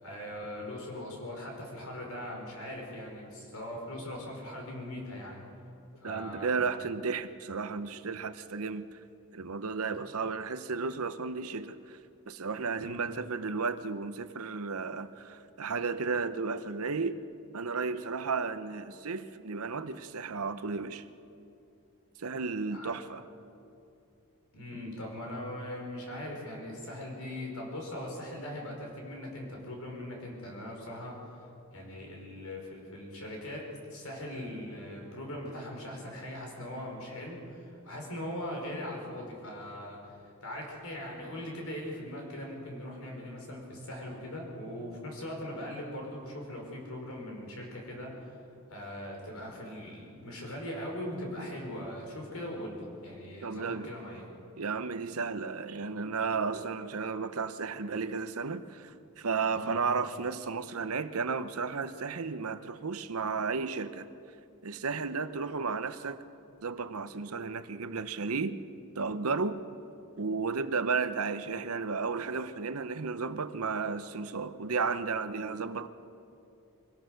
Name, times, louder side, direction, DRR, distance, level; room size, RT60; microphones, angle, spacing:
voice 1, 0.0-5.4 6.0-6.6 9.9-10.1 12.8-13.0 22.7-22.9 24.5-31.2 31.7-48.4 48.7-54.2 59.5-59.8, left 1 dB, 70° left, 5.1 m, -40 dB
voice 2, 6.0-8.9 9.3-12.0 12.3-17.2 17.5-21.0 22.2-23.2 53.4-53.9 54.6-64.1 64.6-66.2 66.6-68.6 69.0-69.7 70.2-75.9, right 4 dB, 75° right, 0.8 m, -33 dB
23.0 x 17.0 x 6.6 m
head